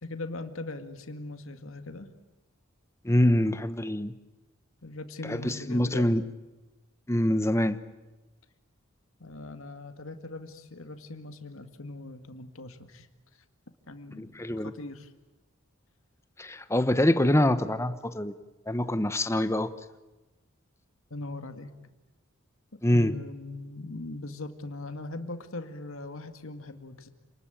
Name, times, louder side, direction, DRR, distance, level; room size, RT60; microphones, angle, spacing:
voice 1, 0.0-2.1 4.8-6.1 9.2-13.1 13.9-15.1 21.1-21.7 22.9-27.1, left 2 dB, 75° left, 8 dB, 1.9 m, -40 dB
voice 2, 3.0-4.1 5.3-6.2 7.1-7.8 14.2-14.7 16.4-18.3 18.7-19.7 22.8-23.1, left 1 dB, 15° left, 11 dB, 1.0 m, -25 dB
28.5 x 20.0 x 9.1 m, 1.1 s
head